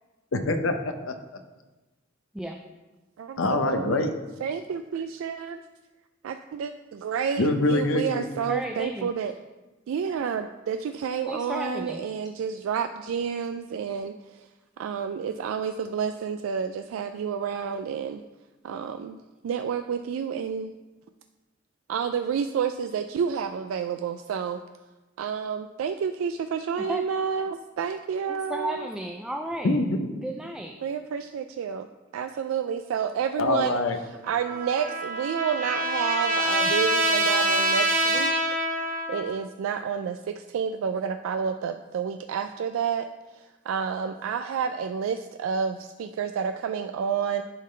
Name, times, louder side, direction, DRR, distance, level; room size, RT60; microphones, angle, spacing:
voice 1, 0.3-1.1 3.4-4.1 7.4-8.5 29.6-30.3 33.4-34.0, left 2 dB, 80° left, 7 dB, 0.7 m, -25 dB
voice 2, 3.2-4.1 4.4-5.6 6.2-9.3 9.9-14.5 14.8-18.2 18.6-19.2 19.4-20.7 21.9-24.6 25.2-28.9 30.8-31.9 32.1-33.8 34.2-38.6 39.1-47.4, right 7 dB, 85° right, 8 dB, 0.3 m, -30 dB
voice 3, 8.5-9.1 11.3-12.0 26.8-27.1 28.3-29.7 30.2-30.8, right 1 dB, 5° right, 2 dB, 0.3 m, -33 dB
Trumpet, 34.2-39.4, right 1 dB, 45° right, 0.8 m, -25 dB
11.0 x 3.8 x 3.2 m, 1.1 s
head